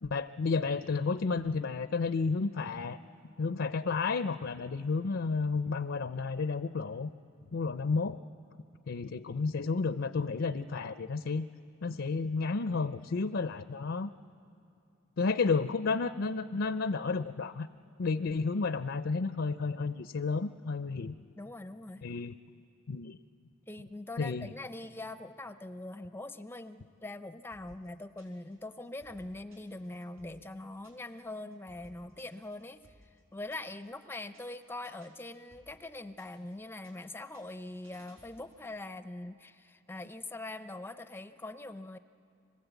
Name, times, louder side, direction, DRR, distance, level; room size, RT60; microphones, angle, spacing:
voice 1, 0.0-3.0 3.4-7.1 7.5-8.2 8.9-11.5 11.8-14.1 15.2-17.7 18.0-21.1 22.0-22.4 22.9-23.2 24.2-24.5, left 4 dB, 60° left, 11 dB, 0.5 m, -31 dB
voice 2, 21.4-22.0 23.7-42.0, left 2 dB, 10° left, 10 dB, 0.5 m, -43 dB
sound 1, 27.5-28.5 28.8-31.2 31.5-33.9 34.2-34.5 34.8-36.5 36.8-38.6, equal, 85° right, 5.7 m, -62 dB
25.5 x 21.0 x 8.1 m, 2.6 s
head